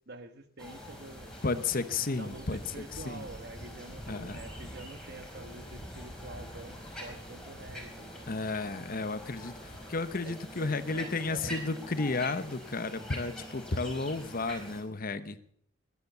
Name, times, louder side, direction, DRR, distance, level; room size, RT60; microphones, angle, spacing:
voice 1, 0.1-1.3 2.2-8.3 10.2-11.6, right 2 dB, 60° right, 9 dB, 1.5 m, -47 dB
sound 1, 0.6-14.8, equal, 5° left, 4.9 m, -45 dB
voice 2, 1.4-3.3 4.1-4.4 8.3-15.4, left 3 dB, 50° left, 12 dB, 1.1 m, -33 dB
21.5 x 9.9 x 6.9 m, 0.65 s
head